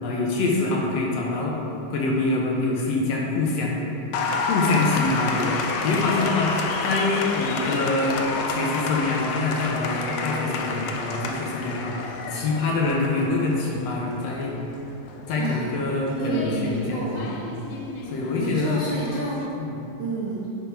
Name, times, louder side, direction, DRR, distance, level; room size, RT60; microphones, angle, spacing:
voice 1, 0.0-1.6 1.9-3.8 4.5-6.5 6.8-8.2 8.5-14.6 15.3-17.3 18.1-18.8 19.6-19.8, left 3 dB, 70° left, -2 dB, 1.8 m, -25 dB
Applause, 4.1-19.5, left 4 dB, 90° left, 1.3 m, -30 dB
voice 2, 16.1-17.3 18.4-19.5 20.0-20.5, right 3 dB, 65° right, -7 dB, 1.2 m, -30 dB
9.6 x 6.1 x 3.4 m, 2.8 s
omnidirectional pair, 3.4 m